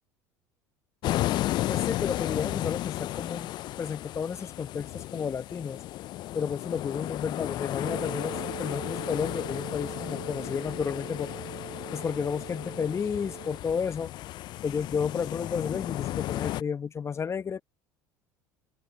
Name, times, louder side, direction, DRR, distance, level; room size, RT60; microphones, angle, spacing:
sound 1, 1.0-16.6, left 15 dB, 50° left, 0.5 m, -34 dB
voice 1, 1.7-5.8 6.3-11.3 11.9-14.1 14.6-17.6, left 6 dB, 30° left, 1.2 m, -32 dB
sound 2, 7.8-13.6, right 17 dB, 55° right, 1.9 m, -43 dB
open air
hypercardioid pair, 70°, 10 cm